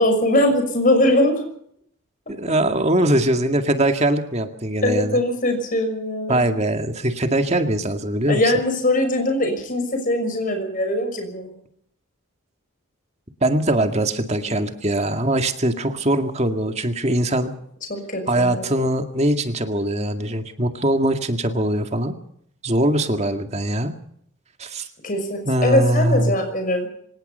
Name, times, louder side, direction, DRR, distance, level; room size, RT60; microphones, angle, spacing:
voice 1, 0.0-1.4 4.8-6.4 8.3-11.6 17.9-18.8 25.0-26.9, left 1 dB, 40° left, 5 dB, 6.0 m, -21 dB
voice 2, 2.3-5.2 6.3-8.5 13.4-17.5 18.3-22.1 22.6-23.9 24.6-24.9 25.5-26.3, right 1 dB, 30° right, 6 dB, 2.1 m, -21 dB
26.0 x 18.5 x 5.5 m, 0.66 s
head